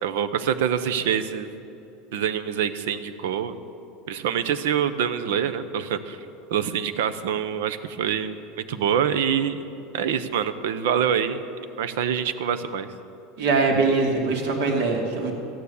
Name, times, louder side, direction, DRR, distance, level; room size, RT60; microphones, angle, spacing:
voice 1, 0.0-1.5 2.1-3.5 4.1-6.2 6.5-9.6 9.9-11.4 11.8-12.9, right 8 dB, 85° right, 12 dB, 0.8 m, -25 dB
voice 2, 13.4-15.3, right 3 dB, 65° right, 2 dB, 2.5 m, -22 dB
13.5 x 9.5 x 8.5 m, 2.7 s
supercardioid pair, 170°, 0 cm